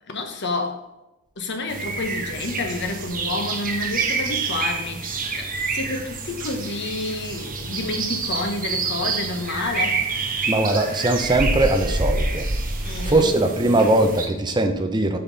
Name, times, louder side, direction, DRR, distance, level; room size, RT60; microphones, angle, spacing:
voice 1, 0.1-0.9 1.4-10.0 12.8-13.3, left 2 dB, 50° left, 1.1 m, -29 dB
sound 1, 1.7-14.3, right 3 dB, 40° right, 1.1 m, -27 dB
voice 2, 10.5-12.4 13.0-15.2, right 2 dB, 20° right, 0.7 m, -20 dB
7.9 x 6.0 x 4.0 m
head